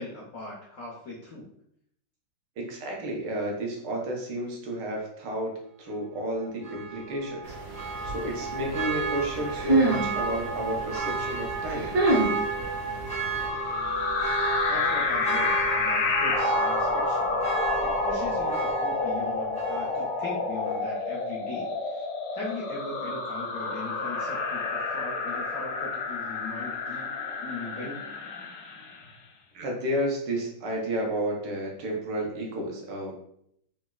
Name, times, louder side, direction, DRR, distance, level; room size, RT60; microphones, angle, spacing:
voice 1, 0.0-1.5 14.7-17.3 17.8-22.0 22.3-27.1 27.4-28.0, left 2 dB, 65° left, -5 dB, 0.8 m, -39 dB
voice 2, 2.6-5.5 5.8-7.4 8.0-11.9 29.5-33.1, right 1 dB, 75° right, -1 dB, 1.4 m, -31 dB
Church bell, 6.6-20.3 20.7-20.8, right 4 dB, 10° left, 0.3 m, -33 dB
sound 1, 7.4-13.5, right 2 dB, 55° right, 1.1 m, -29 dB
sound 2, 13.4-29.0, left 3 dB, 85° left, 1.3 m, -29 dB
3.9 x 2.3 x 2.2 m, 0.71 s
omnidirectional pair, 2.0 m